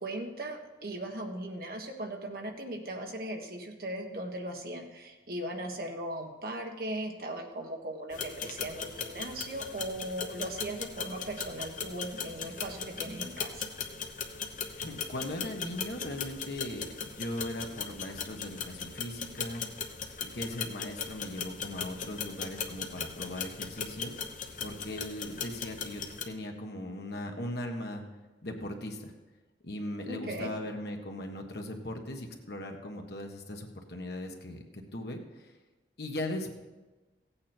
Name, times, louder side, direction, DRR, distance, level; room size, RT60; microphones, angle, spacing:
voice 1, 0.0-13.6 30.1-30.5, right 1 dB, 55° right, 3 dB, 1.4 m, -38 dB
sound 1, 8.1-26.2, left 6 dB, 45° left, 0.9 m, -39 dB
voice 2, 14.8-19.9 20.2-24.1 24.6-28.0 28.4-29.1 29.6-34.6 34.9-35.5 36.0-36.5, left 1 dB, 65° left, 3 dB, 1.5 m, -39 dB
16.0 x 8.7 x 4.4 m, 1.2 s
head